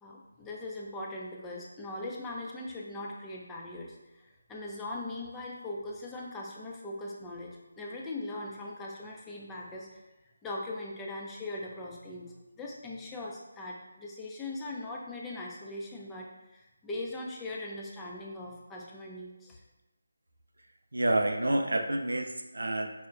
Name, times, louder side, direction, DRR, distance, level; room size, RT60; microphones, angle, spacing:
voice 1, 0.0-10.0 10.4-19.6, left 2 dB, 10° left, -3 dB, 0.4 m, -40 dB
voice 2, 20.9-23.1, right 1 dB, 85° right, 5 dB, 0.4 m, -29 dB
5.5 x 2.1 x 2.5 m, 1.0 s
figure-of-eight pair, 160°, 0 cm